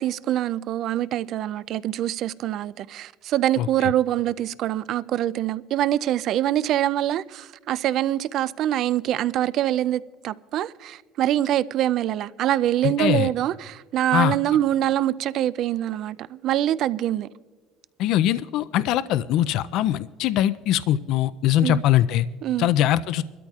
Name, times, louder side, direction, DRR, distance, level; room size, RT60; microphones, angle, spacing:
voice 1, 0.0-17.3 21.6-21.8 22.4-22.7, right 12 dB, 60° right, 0.3 m, -24 dB
voice 2, 12.8-13.3 14.1-14.4 18.0-22.3 22.6-23.2, left 12 dB, 70° left, 0.3 m, -22 dB
25.0 x 13.0 x 2.4 m
cardioid pair, 105°, 0 cm